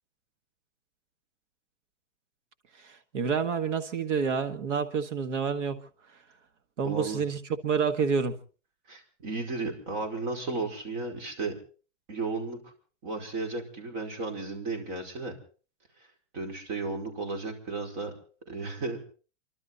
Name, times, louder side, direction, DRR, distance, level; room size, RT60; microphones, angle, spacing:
voice 1, 2.8-5.8 6.8-8.4, right 6 dB, 85° right, 1.8 m, -28 dB
voice 2, 6.8-7.2 8.9-11.5 12.1-12.7 13.0-15.3 16.3-18.2 18.5-19.0, right 3 dB, 50° right, 5.1 m, -34 dB
29.0 x 12.5 x 4.1 m
supercardioid pair, 145°, 36 cm